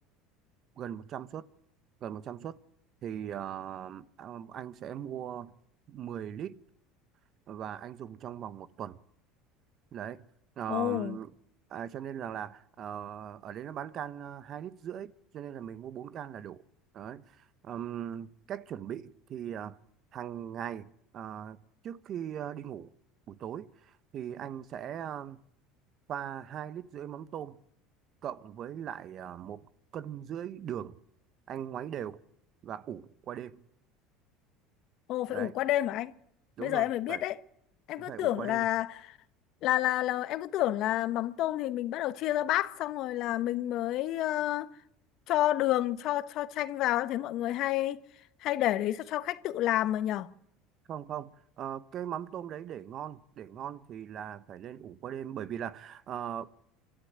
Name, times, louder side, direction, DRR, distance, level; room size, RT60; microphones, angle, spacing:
voice 1, 0.8-1.4 2.0-2.6 3.0-5.5 5.9-6.6 7.5-9.0 9.9-10.2 10.6-11.3 11.7-16.6 16.9-19.8 20.1-20.9 21.1-21.6 21.8-22.9 23.3-25.4 26.1-27.6 28.2-29.7 29.9-31.0 31.5-32.2 32.6-33.6 35.3-35.5 36.6-37.2 38.0-38.7 50.9-56.5, right 9 dB, 45° right, 1.0 m, -39 dB
voice 2, 10.7-11.2 35.1-36.1 36.6-37.4 37.9-39.2 39.6-44.7 45.3-48.0 48.4-50.3, left 14 dB, 60° left, 1.1 m, -29 dB
26.0 x 13.0 x 8.9 m
supercardioid pair, 105°, 0 cm